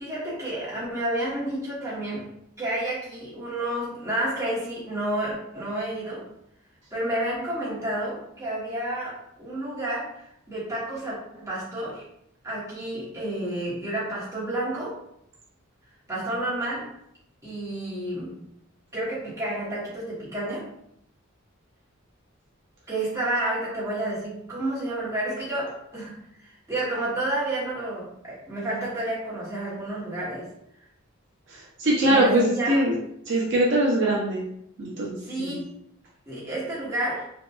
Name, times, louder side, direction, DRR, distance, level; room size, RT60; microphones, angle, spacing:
voice 1, 0.0-2.3 2.6-6.2 6.9-12.0 12.4-15.0 16.1-16.9 17.4-18.4 18.9-20.7 22.9-30.5 32.1-32.9 35.3-35.8 36.3-37.3, right 1 dB, 15° right, -9 dB, 0.9 m, -30 dB
voice 2, 31.5-32.9 33.3-34.4 34.8-35.6, right 1 dB, 55° right, -4 dB, 0.5 m, -22 dB
2.7 x 2.2 x 2.2 m, 0.76 s
head